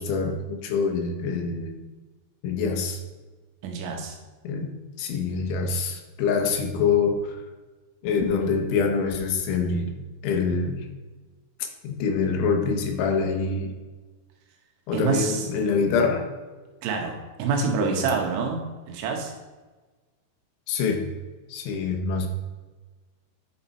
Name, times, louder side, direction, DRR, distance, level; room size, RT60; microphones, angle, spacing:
voice 1, 0.0-1.7 2.4-3.0 4.5-7.4 8.0-10.9 11.8-13.7 14.9-16.3 17.8-18.1 20.7-21.1 21.5-22.3, left 5 dB, 85° left, 3 dB, 3.4 m, -25 dB
voice 2, 3.6-4.2 14.9-15.5 16.8-18.6 18.9-19.3, right 5 dB, 85° right, 2 dB, 3.6 m, -27 dB
10.0 x 5.8 x 4.2 m, 1.3 s
omnidirectional pair, 5.3 m